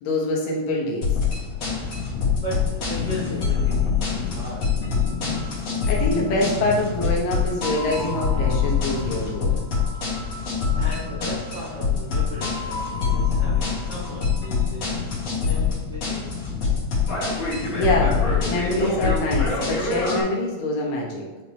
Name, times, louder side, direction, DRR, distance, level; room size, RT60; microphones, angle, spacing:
voice 1, 0.0-1.1 5.9-9.6 17.7-21.2, left 1 dB, 70° left, -2 dB, 2.5 m, -25 dB
sound 1, 1.0-20.2, left 5 dB, 55° left, 3.5 m, -25 dB
sound 2, 1.5-20.2, left 4 dB, 85° left, 2.7 m, -34 dB
voice 2, 2.0-4.7 10.2-16.2, equal, 75° right, -8 dB, 0.9 m, -37 dB
9.7 x 4.0 x 3.0 m, 1.3 s
omnidirectional pair, 4.4 m